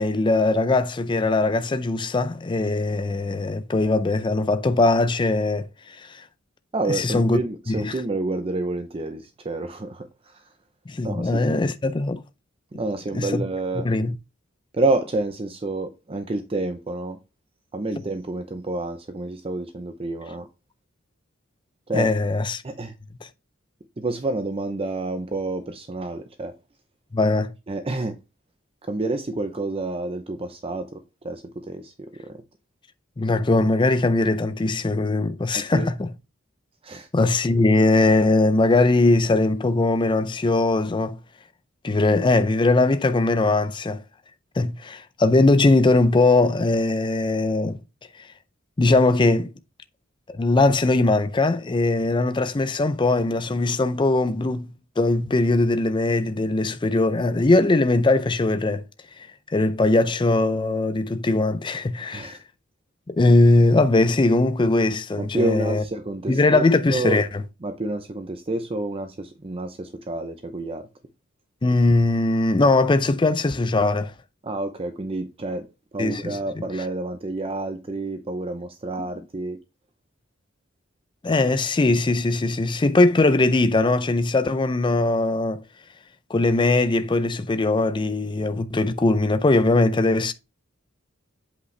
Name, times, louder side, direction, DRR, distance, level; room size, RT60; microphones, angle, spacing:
voice 1, 0.0-6.2 6.9-7.4 7.7-7.9 10.9-12.2 13.1-13.4 13.8-14.2 21.9-22.6 27.1-27.5 33.2-36.1 37.1-41.2 41.8-44.0 44.6-47.8 48.2-48.3 48.8-49.5 50.3-58.8 59.5-62.4 63.1-65.8 66.3-67.3 71.6-74.1 76.0-76.6 79.0-79.1 81.2-85.6 86.3-90.3, left 2 dB, 25° left, 0.5 m, -20 dB
voice 2, 6.7-10.5 11.0-11.6 12.7-13.9 14.7-17.2 17.7-20.5 21.9-22.1 22.6-22.9 24.0-26.6 27.7-28.2 28.8-32.4 35.5-35.9 36.8-37.1 62.1-62.4 65.2-66.6 66.9-67.2 67.6-70.9 74.4-75.7 75.9-79.6, right 2 dB, 30° right, 0.6 m, -29 dB
8.1 x 5.3 x 3.2 m
head